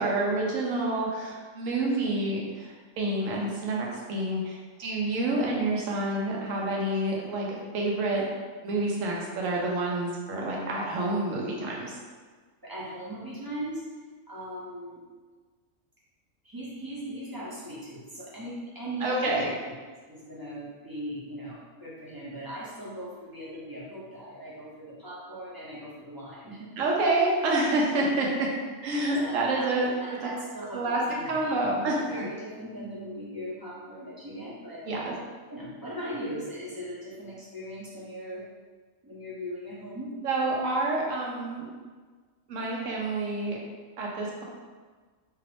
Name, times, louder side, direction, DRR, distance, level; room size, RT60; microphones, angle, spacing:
voice 1, 0.0-8.3 8.6-11.9 19.0-19.5 26.8-28.5 28.8-29.9 30.7-31.0 31.3-32.2 34.8-35.2 40.2-41.6 42.5-43.6 44.0-44.4, right 2 dB, 75° right, -2 dB, 1.0 m, -28 dB
voice 2, 12.6-13.8 14.3-15.0 16.4-19.4 20.1-26.7 29.2-29.7 30.0-34.8 35.5-38.4 39.0-40.1, equal, 25° right, -8 dB, 0.4 m, -39 dB
2.9 x 2.4 x 3.3 m, 1.4 s
omnidirectional pair, 1.4 m